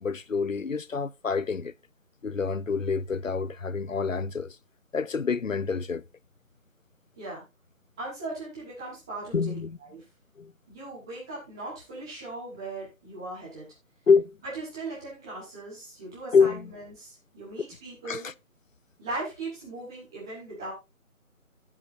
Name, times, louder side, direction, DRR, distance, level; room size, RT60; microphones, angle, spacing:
voice 1, 0.0-1.7 2.2-4.6 4.9-6.0 9.3-9.8 10.4-10.5 14.1-14.4 16.3-16.7 18.0-18.3, left 5 dB, 65° left, 0.7 m, -26 dB
voice 2, 8.0-9.6 9.9-10.0 10.7-13.7 14.5-18.3 19.0-20.7, right 2 dB, 5° right, 1.3 m, -38 dB
16.5 x 7.3 x 2.6 m
figure-of-eight pair, 160°, 42 cm